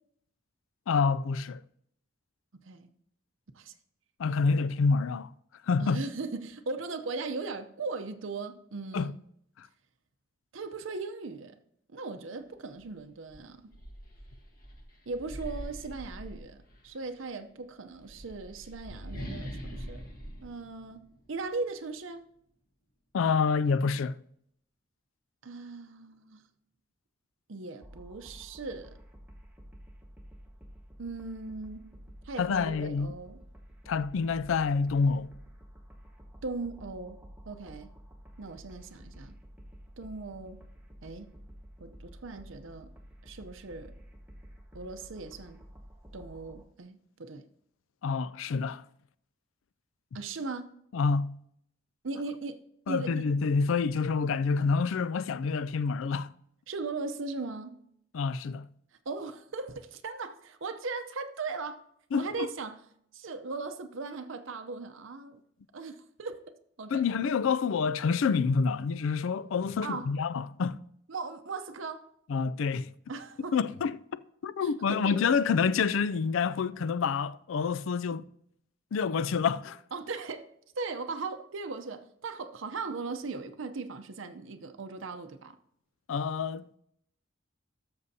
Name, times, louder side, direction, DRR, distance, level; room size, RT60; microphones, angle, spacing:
voice 1, 0.9-1.6 4.2-5.3 5.7-6.0 8.9-9.1 9.6-9.7 23.1-24.2 32.4-33.1 33.9-35.3 48.0-48.8 50.9-51.4 52.9-56.3 58.1-58.7 62.1-62.5 66.9-70.8 72.3-72.9 73.5-78.3 78.9-79.8 86.1-86.8, left 5 dB, 75° left, 0.4 m, -28 dB
voice 2, 5.8-9.2 10.5-11.5 11.9-13.8 15.1-16.6 16.8-20.0 20.4-22.3 25.4-26.4 27.5-28.9 31.0-32.0 32.2-33.4 36.4-37.2 37.5-37.9 38.4-39.4 40.0-40.6 41.0-41.3 41.8-42.9 43.2-43.9 44.7-45.6 46.1-47.5 50.1-50.7 52.0-52.6 52.9-53.2 56.7-57.8 59.1-61.8 62.2-62.8 63.1-65.4 65.7-66.4 66.8-67.1 69.8-70.1 71.1-72.1 73.1-73.6 74.6-75.2 79.9-80.5 80.7-85.6, right 3 dB, 70° right, 0.7 m, -38 dB
sound 1, 12.8-12.9 13.3-16.9 17.9-21.5, equal, 45° left, 1.4 m, -43 dB
sound 2, 27.8-46.6, equal, 5° right, 1.1 m, -51 dB
17.0 x 6.9 x 2.8 m
head